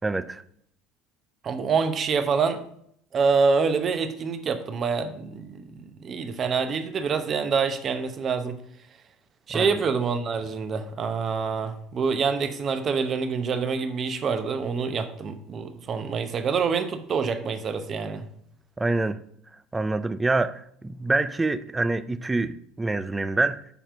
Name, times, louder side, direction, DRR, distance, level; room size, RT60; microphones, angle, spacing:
voice 1, 0.0-0.4 9.5-9.8 18.8-19.2 19.7-23.6, right 2 dB, 15° right, 0.5 m, -26 dB
voice 2, 1.4-2.6 3.1-8.6 9.5-18.2, right 5 dB, 40° right, 0.9 m, -26 dB
7.1 x 4.3 x 5.6 m
hypercardioid pair, 70°, 0 cm